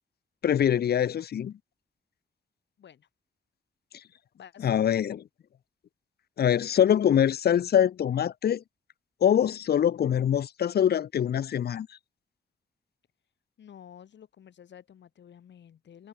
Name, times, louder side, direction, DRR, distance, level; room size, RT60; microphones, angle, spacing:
voice 1, 0.4-1.5 4.6-5.2 6.4-8.6 9.2-12.0, left 9 dB, 60° left, 0.8 m, -24 dB
voice 2, 2.8-3.1 4.3-4.8 13.6-16.1, left 9 dB, 85° left, 7.4 m, -51 dB
wide cardioid pair, 175°, 18 cm